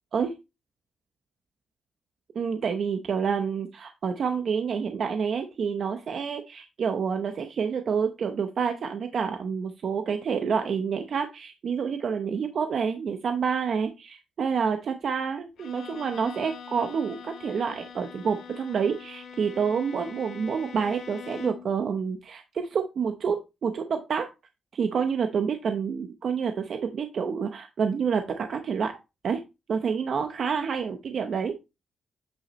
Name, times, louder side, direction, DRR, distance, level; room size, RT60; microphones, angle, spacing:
voice 1, 2.4-24.3 24.7-29.0 29.2-29.4 29.7-31.6, right 6 dB, 55° right, 6 dB, 0.8 m, -28 dB
Bowed string instrument, 15.6-21.8, left 6 dB, 75° left, 1.1 m, -43 dB
8.6 x 5.9 x 3.1 m, 0.26 s
cardioid pair, 120°, 0 cm